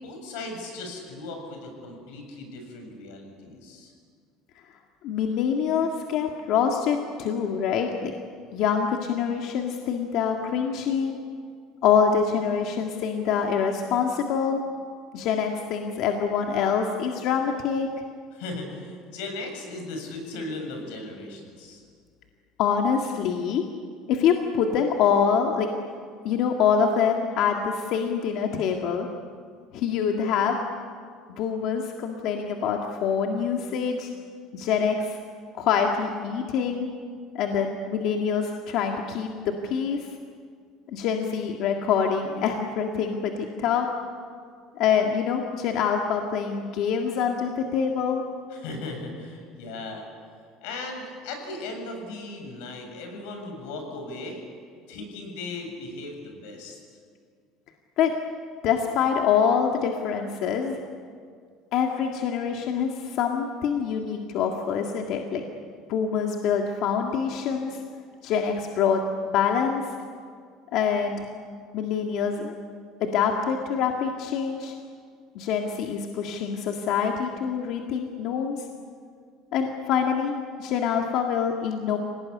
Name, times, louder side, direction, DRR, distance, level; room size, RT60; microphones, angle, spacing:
voice 1, 0.0-3.9 18.3-21.8 48.5-50.1 50.6-54.4 54.9-56.8, left 2 dB, 90° left, 4 dB, 7.6 m, -37 dB
voice 2, 5.0-8.1 8.5-11.1 11.8-14.6 15.1-17.9 22.6-23.6 24.1-29.1 29.7-30.6 31.4-34.1 34.5-35.2 35.5-36.9 37.3-40.1 40.9-43.9 44.8-48.2 58.0-58.2 58.6-60.8 61.7-65.4 65.9-67.8 68.2-69.8 70.7-71.2 71.7-72.5 73.0-74.7 75.4-78.7 79.5-82.0, left 7 dB, 50° left, 2 dB, 1.9 m, -25 dB
27.0 x 19.0 x 9.8 m, 2.1 s
cardioid pair, 170°, 0 cm